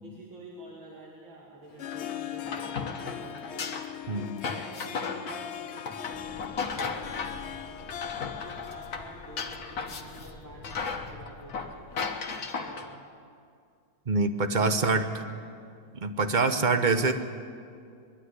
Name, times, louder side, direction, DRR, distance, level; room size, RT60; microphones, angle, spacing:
voice 1, 0.0-3.7 4.2-7.7 8.3-12.2 12.6-13.0 14.6-15.4, right 1 dB, 80° right, -4 dB, 3.2 m, -48 dB
Harp, 1.6-10.4, left 10 dB, 85° left, 0.6 m, -41 dB
sound 1, 1.8-7.5 7.8-10.3 10.6-12.9, left 5 dB, 55° left, 1.7 m, -35 dB
voice 2, 4.1-4.4 14.1-15.1 16.0-17.1, right 3 dB, 40° right, 8 dB, 0.7 m, -25 dB
sound 2, 6.1-12.3, left 2 dB, 35° left, 1.6 m, -49 dB
21.5 x 12.5 x 9.8 m, 2.3 s
omnidirectional pair, 2.1 m